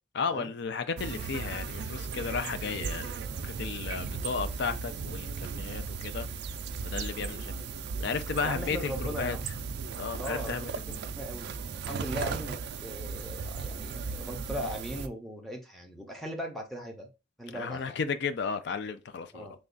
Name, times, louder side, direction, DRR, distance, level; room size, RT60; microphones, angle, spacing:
voice 1, 0.1-3.1 3.4-6.3 6.8-7.5 8.0-9.4 10.0-11.0 17.5-19.5, left 5 dB, 60° left, 0.4 m, -34 dB
sound 1, 1.0-15.1, right 5 dB, 60° right, 0.3 m, -36 dB
voice 2, 8.4-9.5 10.2-10.6 11.2-17.1 17.4-18.0 19.3-19.5, equal, ahead, 0.7 m, -39 dB
3.2 x 2.3 x 3.8 m
head